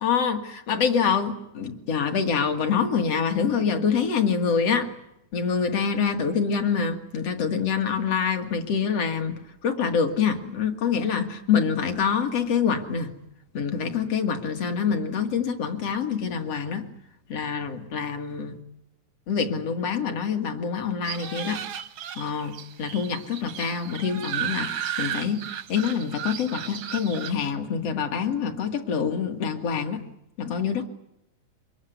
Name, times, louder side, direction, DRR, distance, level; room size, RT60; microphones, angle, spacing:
voice 1, 0.0-4.9 5.3-9.3 9.6-13.2 13.5-16.9 17.3-18.6 19.3-21.6 22.2-25.4 25.7-30.0 30.4-30.9, left 6 dB, 50° left, 6 dB, 2.9 m, -26 dB
sound 1, 21.0-27.3, right 10 dB, 60° right, 1.3 m, -34 dB
24.5 x 22.0 x 9.5 m, 0.85 s
omnidirectional pair, 3.6 m